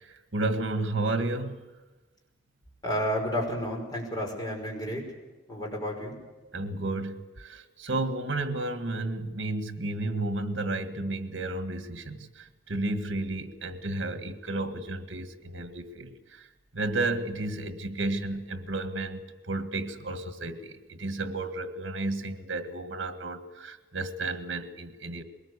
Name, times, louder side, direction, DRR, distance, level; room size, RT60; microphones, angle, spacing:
voice 1, 0.0-1.6 6.5-16.5 16.7-25.2, right 2 dB, 70° right, 9 dB, 1.7 m, -32 dB
voice 2, 2.8-5.0 5.5-6.2, equal, 20° left, 0 dB, 5.4 m, -31 dB
21.5 x 19.0 x 8.3 m, 1.1 s
head